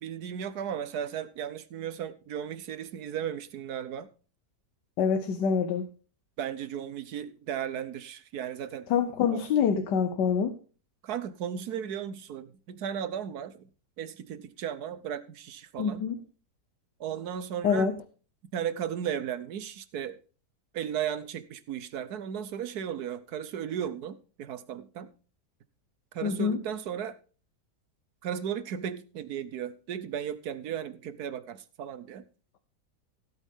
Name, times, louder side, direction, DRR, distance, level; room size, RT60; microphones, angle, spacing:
voice 1, 0.0-4.1 6.4-8.9 9.3-9.4 11.0-13.6 14.0-16.0 17.0-17.9 18.5-20.2 20.7-25.1 26.1-27.2 28.2-32.2, right 9 dB, 70° right, 1.3 m, -35 dB
voice 2, 5.0-5.9 8.9-10.5 15.8-16.2 17.6-18.0 26.2-26.6, left 6 dB, 90° left, 1.5 m, -26 dB
16.5 x 8.3 x 3.6 m
omnidirectional pair, 1.8 m